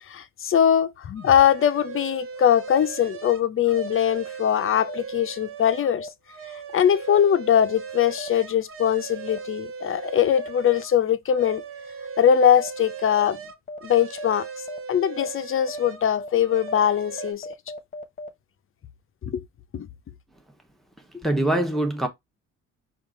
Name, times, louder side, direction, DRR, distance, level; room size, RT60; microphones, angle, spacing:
voice 1, 0.1-6.1 6.7-11.6 12.2-13.4 13.8-14.5 14.9-17.5 19.2-19.4 19.7-19.9, left 9 dB, 45° left, 0.6 m, -21 dB
sound 1, 1.1-5.9 6.3-10.9 11.3-16.1 16.4-17.3, right 6 dB, 45° right, 0.9 m, -38 dB
sound 2, 2.7-2.8 3.8-3.9 4.9-5.0 6.0-6.1 7.1-7.2 8.2-8.3 9.3-9.4 10.4-10.5 11.5-11.6 12.6-12.7 13.2-13.3 13.7-13.8 14.2-14.3 14.7-14.8 15.2-15.3 15.7-15.8 16.2-16.3 16.7-16.8 17.2-18.3, left 1 dB, 25° left, 1.0 m, -36 dB
voice 2, 21.1-22.1, right 1 dB, ahead, 0.9 m, -23 dB
4.7 x 2.5 x 3.7 m
cardioid pair, 90°, 30 cm